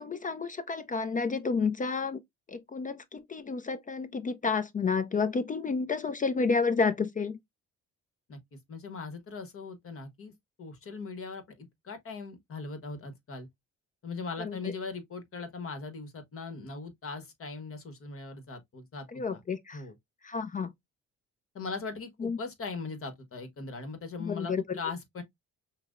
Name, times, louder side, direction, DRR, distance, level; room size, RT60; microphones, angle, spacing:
voice 1, 0.0-2.2 2.5-7.4 14.4-14.7 19.1-19.8 20.2-20.7 22.2-22.4 24.2-24.6, left 4 dB, 25° left, 0.4 m, -30 dB
voice 2, 8.7-10.3 10.6-13.5 14.0-19.4 19.7-19.9 21.5-25.2, left 4 dB, 45° left, 1.2 m, -40 dB
5.8 x 2.1 x 2.4 m
cardioid pair, 90°, 30 cm